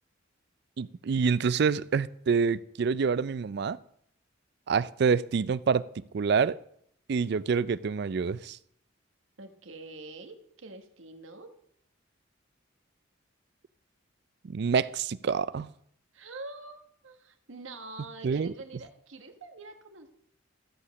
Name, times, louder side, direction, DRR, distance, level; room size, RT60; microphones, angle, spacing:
voice 1, 0.8-3.8 4.7-5.9 6.1-6.6 7.1-8.6 14.4-15.7 18.2-18.5, right 5 dB, 55° right, 0.4 m, -27 dB
voice 2, 9.4-11.5 16.1-20.1, right 2 dB, 85° right, 1.3 m, -45 dB
14.0 x 5.1 x 7.0 m
head